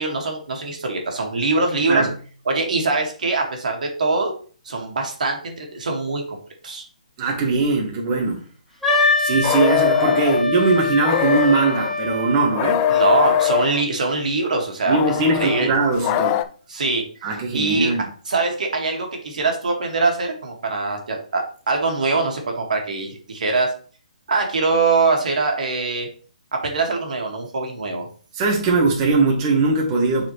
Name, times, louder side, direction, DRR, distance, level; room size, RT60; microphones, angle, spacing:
voice 1, 0.0-2.1 2.5-4.3 4.7-6.4 6.6-6.8 12.9-15.7 16.7-17.0 17.5-17.9 18.3-23.7 24.3-26.1 26.5-28.1, right 3 dB, 75° right, 2 dB, 1.9 m, -23 dB
voice 2, 7.2-8.4 9.2-12.9 14.9-16.4 17.2-18.0 28.3-30.3, right 3 dB, 25° right, 0 dB, 1.3 m, -20 dB
Wind instrument woodwind instrument, 8.8-12.7, left 3 dB, ahead, 1.2 m, -23 dB
sound 1, 9.4-10.4 11.0-11.9 12.5-13.8 14.9-16.4, left 11 dB, 25° left, 0.3 m, -22 dB
7.4 x 4.2 x 3.1 m, 0.41 s
hypercardioid pair, 155°, 4 cm